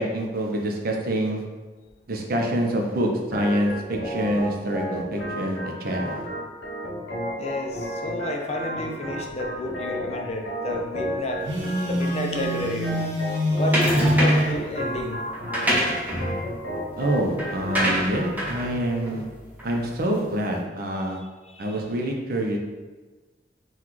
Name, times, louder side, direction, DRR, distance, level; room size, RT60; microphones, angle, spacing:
voice 1, 0.0-1.4 2.1-6.3 16.9-19.2 19.6-21.2 21.6-22.6, right 1 dB, 55° right, 1 dB, 0.6 m, -26 dB
Organ, 3.3-18.3, equal, 80° left, 0.9 m, -33 dB
voice 2, 7.4-11.4 11.8-12.9 13.6-15.2 21.5-21.7, left 1 dB, 35° left, 1 dB, 0.5 m, -30 dB
Telephone, 11.4-14.6, equal, 80° right, 0.9 m, -25 dB
sound 1, 13.7-14.6 15.3-20.0, equal, 10° right, 0.8 m, -27 dB
5.9 x 2.3 x 3.1 m, 1.3 s
head